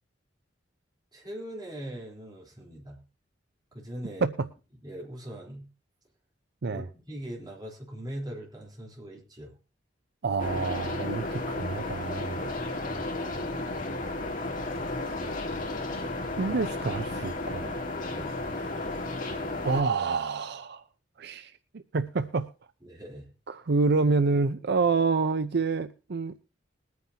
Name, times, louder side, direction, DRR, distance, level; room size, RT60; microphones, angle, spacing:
voice 1, 1.1-3.0 3.7-4.2 4.8-5.6 6.7-9.5 18.0-18.4 22.8-23.3, right 1 dB, 20° right, -2 dB, 3.8 m, -41 dB
voice 2, 10.2-12.4 16.4-17.8 18.5-18.7 19.6-20.8 21.2-22.5 23.5-26.4, right 4 dB, 65° right, 11 dB, 0.6 m, -28 dB
sound 1, 10.4-19.8, left 2 dB, 45° left, 2.0 m, -33 dB
21.5 x 9.4 x 2.8 m, 0.32 s
head